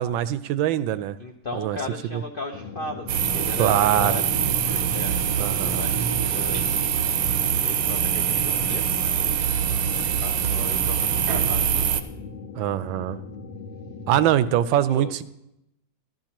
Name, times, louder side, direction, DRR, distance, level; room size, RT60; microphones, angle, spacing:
voice 1, 0.0-1.2 1.5-1.8 2.1-2.2 3.6-4.1 5.4-5.8 12.5-13.2 14.1-15.2, right 11 dB, 90° right, 14 dB, 1.3 m, -23 dB
voice 2, 1.2-6.7 7.5-9.4 9.7-12.1 12.7-13.2 14.7-15.2, left 3 dB, 65° left, 4 dB, 0.5 m, -38 dB
sound 1, 2.5-14.3, left 4 dB, 85° left, 1.8 m, -39 dB
sound 2, 3.1-12.0, right 8 dB, 65° right, 0.9 m, -24 dB
14.0 x 12.5 x 2.9 m, 0.82 s
omnidirectional pair, 2.1 m